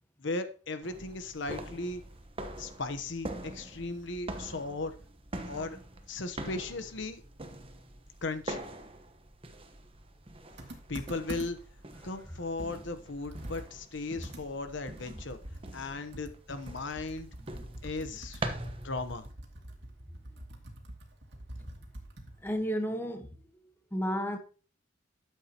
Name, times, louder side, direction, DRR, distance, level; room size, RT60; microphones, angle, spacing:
voice 1, 0.2-2.0 2.6-4.9 5.5-5.8 6.1-7.2 8.2-8.6 10.9-11.6 12.0-15.4 15.7-17.3 17.8-18.4 18.8-19.3, left 3 dB, 65° left, 0.9 m, -37 dB
sound 1, 0.8-19.3, right 1 dB, 30° right, 1.1 m, -44 dB
Computer keyboard, 10.6-11.8 12.2-12.3 12.6-15.9 16.1-22.6, right 1 dB, 60° right, 2.4 m, -46 dB
voice 2, 17.6-18.2 18.5-18.6 21.6-21.7 22.4-23.4 23.9-24.4, equal, 10° left, 1.2 m, -34 dB
12.5 x 8.2 x 2.9 m
head